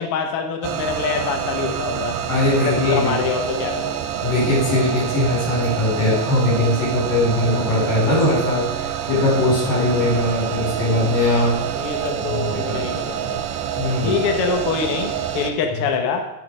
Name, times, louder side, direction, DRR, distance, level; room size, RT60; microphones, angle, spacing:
voice 1, 0.0-2.2 2.6-4.0 11.8-13.4 14.0-16.2, left 5 dB, 80° left, 4 dB, 1.2 m, -25 dB
sound 1, 0.6-15.5, right 9 dB, 80° right, 2.5 m, -27 dB
voice 2, 2.3-3.1 4.2-11.6 12.3-12.8 13.8-14.2, left 1 dB, 45° left, -4 dB, 5.6 m, -20 dB
9.1 x 6.6 x 6.4 m, 0.92 s
omnidirectional pair, 4.3 m